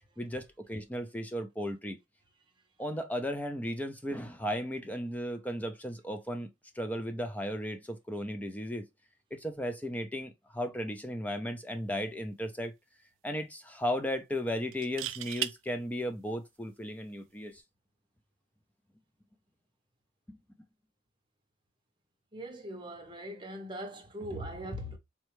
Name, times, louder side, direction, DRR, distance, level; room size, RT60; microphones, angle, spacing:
voice 1, 0.2-2.0 2.8-6.5 6.7-8.9 9.3-12.7 13.2-17.6 20.3-20.4, equal, 10° left, 0.4 m, -35 dB
sound 1, 11.9-12.1 12.4-12.5 14.7-15.5 17.4-17.6, right 13 dB, 75° right, 0.3 m, -36 dB
voice 2, 22.3-25.0, equal, 25° right, 0.8 m, -40 dB
4.2 x 2.3 x 3.1 m
head